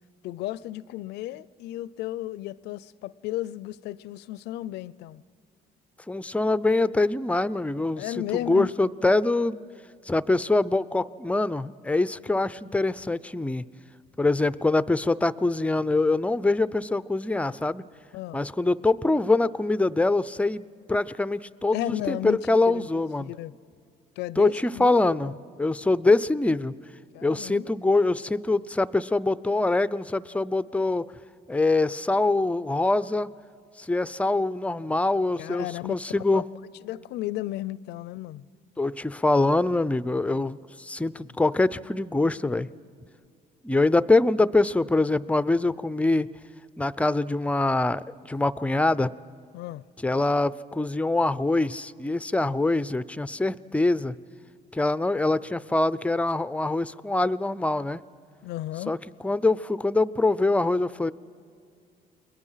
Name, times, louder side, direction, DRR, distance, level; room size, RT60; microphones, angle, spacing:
voice 1, 0.2-5.2 8.0-8.7 18.1-18.4 21.7-23.5 24.2-25.4 27.1-27.7 35.4-36.0 36.3-36.4 36.8-38.5 49.5-49.8 58.4-59.0, left 15 dB, 80° left, 0.5 m, -34 dB
voice 2, 6.1-9.6 10.1-13.6 14.2-17.8 18.3-23.3 24.4-26.7 27.2-31.0 31.5-33.3 33.8-36.5 38.8-42.7 43.6-46.3 46.8-49.1 50.0-54.1 54.7-58.0 58.9-59.0 59.2-61.1, left 2 dB, 10° left, 0.5 m, -24 dB
29.5 x 21.5 x 5.7 m
cardioid pair, 110°, 17 cm